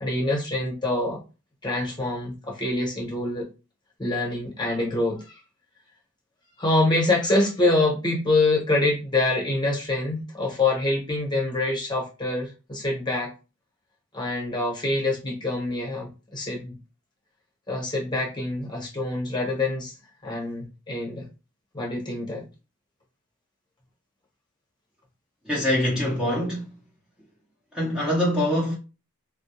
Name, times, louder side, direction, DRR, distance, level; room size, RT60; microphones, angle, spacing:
voice 1, 0.0-1.2 1.6-3.5 4.0-5.4 6.6-13.3 14.1-16.8 17.7-19.9 20.2-21.3 21.7-22.5, left 2 dB, 20° left, 0.9 m, -25 dB
voice 2, 25.4-26.8 27.7-28.7, left 1 dB, 5° right, 0.7 m, -24 dB
2.2 x 2.1 x 2.8 m
head